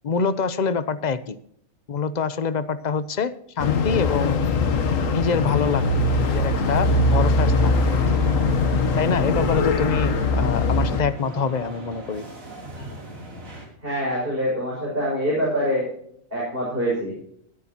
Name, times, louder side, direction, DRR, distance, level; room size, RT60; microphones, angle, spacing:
voice 1, 0.0-1.4 1.9-4.5 5.1-7.8 9.0-12.3, left 5 dB, 40° left, 13 dB, 0.7 m, -25 dB
sound 1, 3.6-11.0, left 3 dB, 75° left, 1.4 m, -21 dB
sound 2, 5.6-13.7, right 1 dB, 80° right, 3.6 m, -38 dB
voice 2, 13.8-15.9 16.3-17.1, equal, 40° right, -5 dB, 6.3 m, -25 dB
22.5 x 8.6 x 2.9 m, 0.67 s
omnidirectional pair, 1.4 m